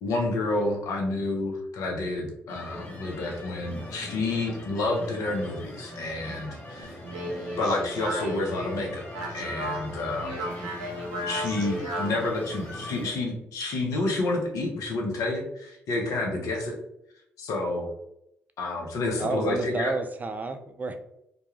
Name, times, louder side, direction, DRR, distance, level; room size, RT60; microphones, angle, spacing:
voice 1, 0.0-7.0 7.6-10.3 11.3-16.8 17.4-17.9 18.6-19.9, left 2 dB, 70° left, 1 dB, 0.7 m, -29 dB
sound 1, 2.5-13.1, left 1 dB, 30° left, 1.1 m, -41 dB
Speech, 6.8-12.3, right 1 dB, 85° right, 0.6 m, -34 dB
voice 2, 19.2-21.0, right 3 dB, 30° right, 7 dB, 0.4 m, -30 dB
2.3 x 2.2 x 3.0 m, 0.78 s
hypercardioid pair, 50°, 6 cm